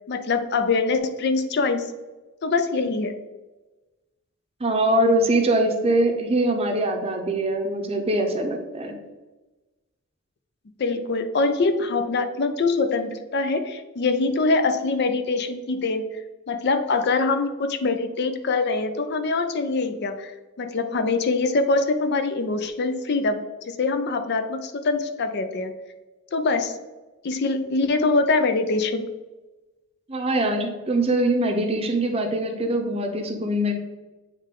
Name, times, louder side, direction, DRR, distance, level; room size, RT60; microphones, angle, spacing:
voice 1, 0.1-1.9 2.4-3.1 10.8-16.1 16.5-20.3 20.6-25.7 26.3-26.7 27.2-29.1, left 3 dB, 55° left, 9 dB, 0.5 m, -24 dB
voice 2, 4.6-9.0 30.1-33.7, right 1 dB, 30° right, 4 dB, 0.7 m, -23 dB
8.4 x 3.2 x 3.7 m, 1.2 s
head